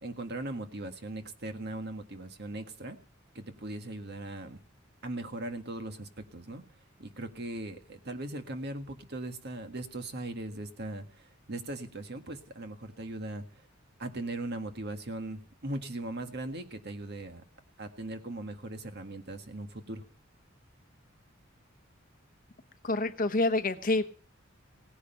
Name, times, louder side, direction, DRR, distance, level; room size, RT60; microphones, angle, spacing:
voice 1, 0.0-3.0 3.4-4.6 5.0-6.6 7.0-13.6 14.0-17.4 17.8-20.0, right 2 dB, 55° right, 6 dB, 1.8 m, -39 dB
voice 2, 22.8-24.1, left 2 dB, 45° left, 10 dB, 1.0 m, -27 dB
17.5 x 9.9 x 5.8 m, 0.42 s
head